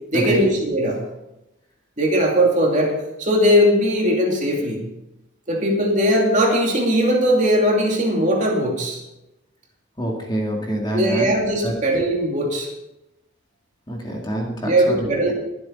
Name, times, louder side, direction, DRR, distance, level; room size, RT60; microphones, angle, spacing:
voice 1, 0.1-1.0 2.0-4.8 5.5-9.0 10.9-12.7 14.6-15.3, equal, 35° right, 0 dB, 2.6 m, -19 dB
voice 2, 10.0-11.3 11.6-11.7 13.9-15.0, right 1 dB, 20° left, 0 dB, 2.0 m, -26 dB
22.5 x 7.8 x 4.1 m, 0.93 s
head